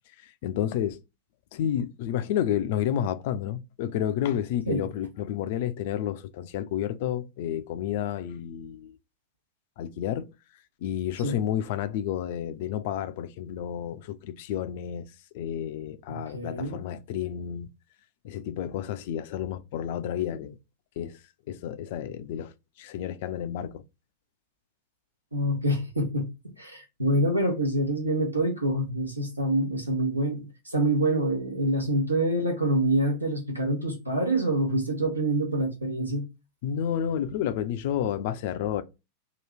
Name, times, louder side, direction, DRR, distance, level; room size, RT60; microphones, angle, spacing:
voice 1, 0.4-1.0 1.5-8.9 9.8-10.3 10.8-15.1 15.3-17.7 18.2-20.6 21.0-21.2 21.5-22.5 22.8-23.8 36.6-38.8, left 10 dB, 50° left, 0.4 m, -30 dB
voice 2, 16.1-16.8 25.3-26.3 26.6-36.2, right 1 dB, 85° right, 1.0 m, -26 dB
2.9 x 2.4 x 3.3 m
figure-of-eight pair, 90°, 0 cm